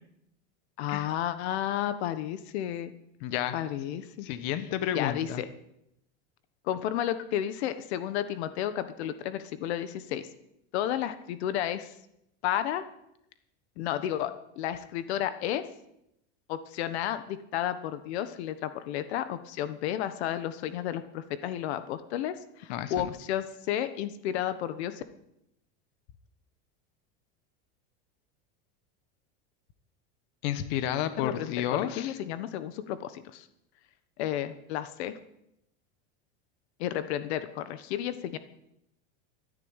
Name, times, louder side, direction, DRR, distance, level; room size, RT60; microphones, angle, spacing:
voice 1, 0.8-2.9 3.5-4.3 4.9-5.5 6.6-10.2 10.7-11.9 12.4-12.8 13.8-15.7 16.5-25.0 31.2-33.5 34.2-35.2 36.8-38.4, left 11 dB, 70° left, 12 dB, 1.4 m, -32 dB
voice 2, 3.2-3.6 4.2-5.4 22.7-23.1 30.4-32.2, left 11 dB, 55° left, 11 dB, 1.3 m, -31 dB
13.5 x 10.5 x 9.0 m, 0.80 s
supercardioid pair, 165°, 33 cm